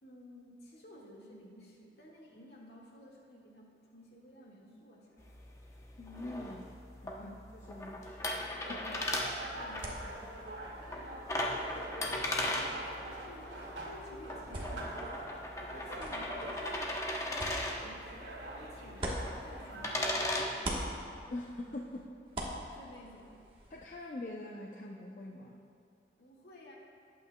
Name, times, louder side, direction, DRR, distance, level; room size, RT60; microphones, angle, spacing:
voice 1, 0.0-5.4 7.2-7.4 8.8-9.1 9.3-15.2 15.6-20.8 22.7-23.4 26.2-26.8, equal, 65° left, -3 dB, 1.8 m, -54 dB
sound 1, 5.2-20.5, left 1 dB, 15° left, 0.8 m, -38 dB
voice 2, 6.0-6.7 7.0-7.4 7.7-8.3 8.7-8.8 21.3-22.1 22.7-22.8 23.7-25.6, left 2 dB, 45° left, -1 dB, 0.6 m, -43 dB
sound 2, 8.3-20.1, right 1 dB, 90° right, 2.1 m, -45 dB
sound 3, 8.9-20.1 20.4-23.8, right 1 dB, 30° right, 1.3 m, -45 dB
19.0 x 8.6 x 2.3 m, 2.5 s
head